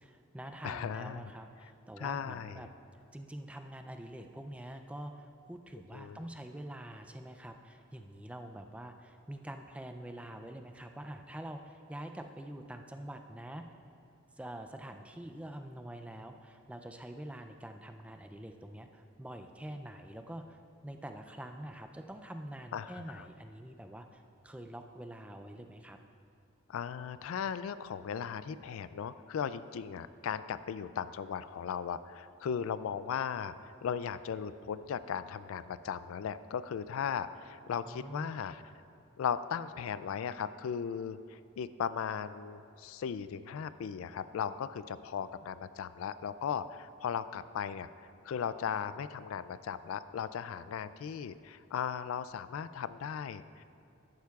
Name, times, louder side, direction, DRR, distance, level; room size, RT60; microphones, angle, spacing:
voice 1, 0.0-2.7 3.1-13.7 14.3-20.6 20.8-26.0 37.9-38.4, right 1 dB, 5° right, 6 dB, 0.3 m, -45 dB
voice 2, 0.6-1.3 2.0-2.6 5.9-6.2 22.7-23.3 26.7-38.6 39.2-47.9 48.2-53.6, left 7 dB, 75° left, 14 dB, 0.3 m, -37 dB
13.5 x 11.5 x 2.4 m, 2.5 s
head